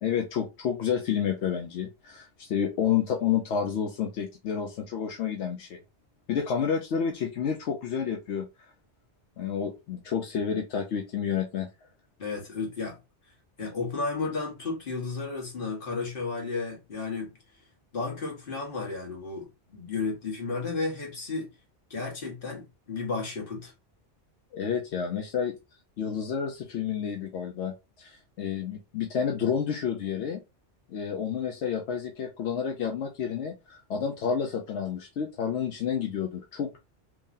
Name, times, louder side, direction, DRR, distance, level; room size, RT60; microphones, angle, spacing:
voice 1, 0.0-5.8 6.3-8.5 9.4-11.7 24.5-25.6 26.0-30.4 30.9-36.8, left 7 dB, 80° left, 0.9 m, -30 dB
voice 2, 12.2-13.0 13.6-17.3 17.9-21.5 21.9-23.7, left 4 dB, 50° left, 1.5 m, -33 dB
3.7 x 3.1 x 2.6 m
omnidirectional pair, 1.2 m